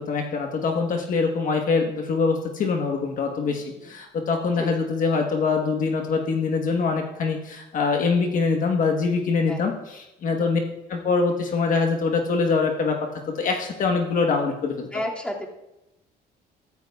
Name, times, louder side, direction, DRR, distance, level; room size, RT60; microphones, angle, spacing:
voice 1, 0.0-10.6 10.9-13.0 13.3-14.9, left 4 dB, 50° left, 2 dB, 1.2 m, -24 dB
voice 2, 3.4-3.9 4.6-4.7 9.5-9.6 10.3-10.6 14.9-15.5, left 1 dB, 5° left, -3 dB, 2.3 m, -33 dB
14.0 x 14.0 x 2.3 m, 0.91 s
cardioid pair, 110°, 17 cm